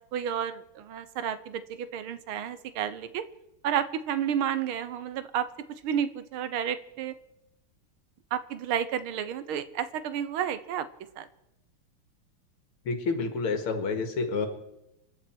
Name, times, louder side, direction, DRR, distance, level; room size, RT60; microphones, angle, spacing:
voice 1, 0.1-3.2 3.6-5.5 5.8-7.1 8.3-10.9 11.2-11.3, right 9 dB, 75° right, 13 dB, 1.7 m, -31 dB
voice 2, 12.8-14.5, left 4 dB, 75° left, 7 dB, 2.7 m, -29 dB
27.5 x 11.5 x 4.6 m, 0.90 s
omnidirectional pair, 2.4 m